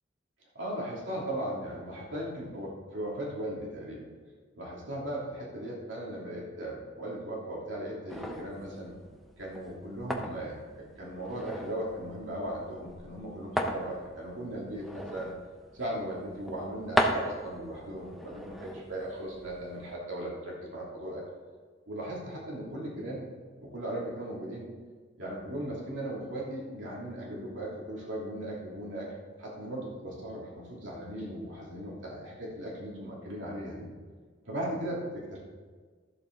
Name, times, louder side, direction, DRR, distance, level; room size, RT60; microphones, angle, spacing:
voice 1, 0.5-4.1 4.5-9.0 9.4-15.3 15.7-21.2 21.9-23.2 23.6-24.7 25.2-29.1 29.4-33.9 34.4-35.4, right 1 dB, 75° right, -4 dB, 2.8 m, -37 dB
sound 1, 8.1-19.9, equal, ahead, 0.8 m, -37 dB
13.0 x 7.4 x 3.9 m, 1.5 s
head